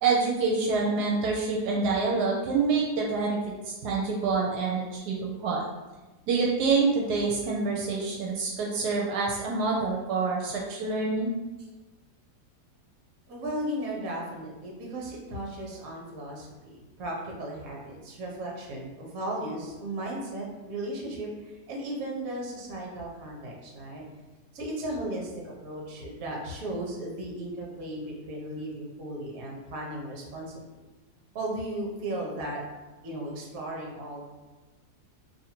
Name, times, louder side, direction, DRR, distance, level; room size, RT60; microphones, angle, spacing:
voice 1, 0.0-3.4 3.7-5.6 6.3-11.3, right 4 dB, 80° right, -2 dB, 1.2 m, -26 dB
voice 2, 13.3-24.0 24.5-25.3 25.6-30.5 31.3-32.6 33.0-34.2, right 1 dB, 65° right, -2 dB, 1.2 m, -36 dB
2.7 x 2.6 x 4.3 m, 1.2 s
omnidirectional pair, 1.7 m